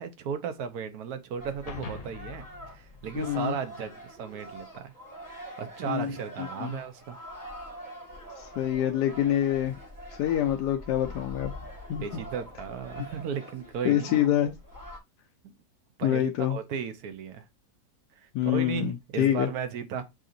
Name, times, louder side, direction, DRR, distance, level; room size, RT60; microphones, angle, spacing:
voice 1, 0.0-4.9 5.6-7.2 12.0-14.1 16.0-17.4 18.1-20.0, right 7 dB, 70° right, 1.1 m, -35 dB
sound 1, 1.4-15.0, equal, 15° left, 1.2 m, -44 dB
sound 2, 1.7-4.2, left 4 dB, 60° left, 0.4 m, -44 dB
voice 2, 3.1-3.6 5.8-6.1 6.4-6.7 8.4-9.7 10.2-11.5 11.9-12.0 13.8-14.5 16.0-16.6 18.3-19.5, left 11 dB, 90° left, 1.2 m, -26 dB
7.5 x 2.7 x 2.5 m
omnidirectional pair, 1.7 m